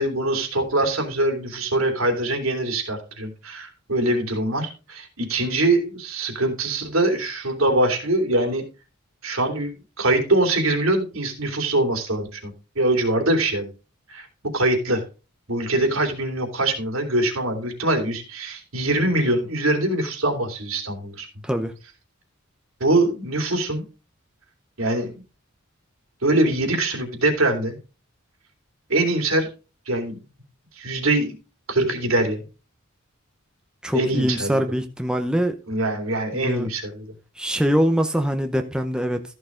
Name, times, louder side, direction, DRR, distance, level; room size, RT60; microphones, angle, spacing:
voice 1, 0.0-8.6 9.2-9.7 10.0-13.7 14.1-14.3 14.5-15.0 15.5-21.3 22.8-23.8 24.8-25.2 26.2-27.8 28.9-29.5 29.9-30.2 30.8-31.3 31.7-32.4 33.9-34.6 35.7-37.1, right 2 dB, 75° right, 3.0 m, -23 dB
voice 2, 33.8-35.5 36.3-36.7 37.4-39.2, equal, 5° right, 0.8 m, -23 dB
14.0 x 6.4 x 3.8 m
head